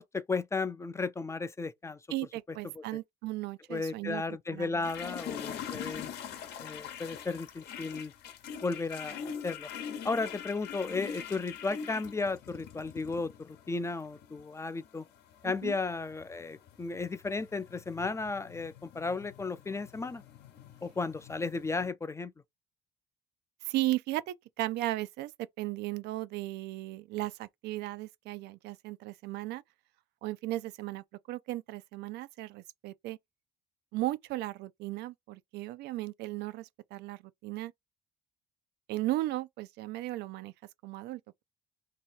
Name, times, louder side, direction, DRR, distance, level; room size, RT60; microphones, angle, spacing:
voice 1, 0.0-2.0 2.8-2.9 3.7-6.1 6.6-8.1 8.6-9.7 10.0-15.1 15.4-20.2 20.8-22.3, left 3 dB, 15° left, 0.4 m, -34 dB
voice 2, 2.1-4.8 15.4-15.8 23.6-25.3 25.6-29.6 30.2-33.2 33.9-37.7 38.9-40.5 40.8-41.4, right 17 dB, 80° right, 0.4 m, -36 dB
sound 1, 4.8-21.9, left 8 dB, 75° left, 0.9 m, -44 dB
2.8 x 2.8 x 4.4 m
cardioid pair, 110°, 17 cm